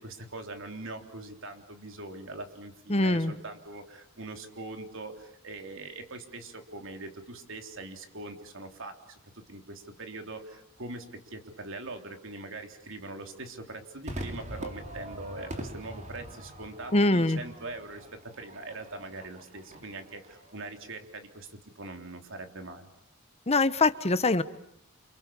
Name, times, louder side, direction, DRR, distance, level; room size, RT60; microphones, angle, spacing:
voice 1, 0.0-22.9, right 2 dB, 65° right, 5 dB, 3.5 m, -42 dB
voice 2, 2.9-3.3 16.9-17.4 23.5-24.4, left 2 dB, 30° left, 12 dB, 1.1 m, -23 dB
Crowd / Fireworks, 14.1-20.6, right 1 dB, 35° right, 3.2 m, -43 dB
29.5 x 28.0 x 7.2 m, 0.76 s
head